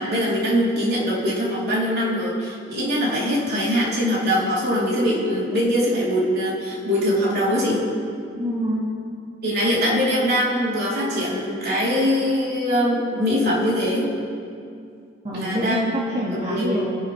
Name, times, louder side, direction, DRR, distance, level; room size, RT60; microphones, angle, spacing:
voice 1, 0.0-7.8 9.4-14.1 15.3-15.9 16.3-16.8, equal, 55° right, -6 dB, 4.1 m, -22 dB
voice 2, 8.4-8.9 15.2-17.0, equal, 35° right, -7 dB, 2.2 m, -26 dB
27.5 x 11.5 x 3.6 m, 2.3 s
head